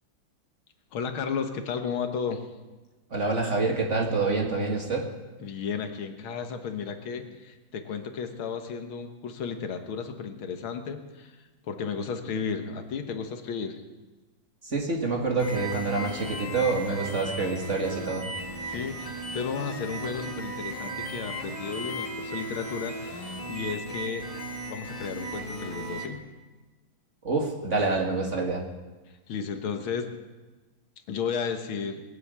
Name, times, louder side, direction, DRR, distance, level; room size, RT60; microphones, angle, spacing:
voice 1, 0.9-2.5 5.4-11.3 11.7-13.8 18.7-24.3 24.7-26.2 29.3-30.1 31.1-32.0, left 6 dB, 85° left, 6 dB, 2.1 m, -33 dB
voice 2, 3.1-5.0 14.6-18.3 27.2-28.6, right 3 dB, 35° right, 0 dB, 2.2 m, -27 dB
sound 1, 15.4-26.1, right 1 dB, 20° left, 1.8 m, -36 dB
21.0 x 7.9 x 8.2 m, 1.2 s
omnidirectional pair, 2.2 m